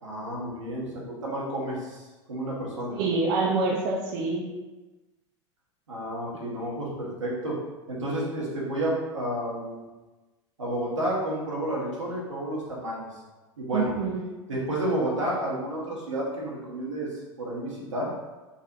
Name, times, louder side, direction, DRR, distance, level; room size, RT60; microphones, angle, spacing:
voice 1, 0.0-3.0 5.9-7.6 7.9-9.8 10.6-13.1 13.6-13.9 14.5-18.1, right 1 dB, 90° right, -5 dB, 1.0 m, -31 dB
voice 2, 2.9-4.5 13.7-14.2, right 3 dB, 55° right, -1 dB, 0.5 m, -26 dB
3.9 x 2.1 x 2.7 m, 1.2 s
hypercardioid pair, 85°, 15 cm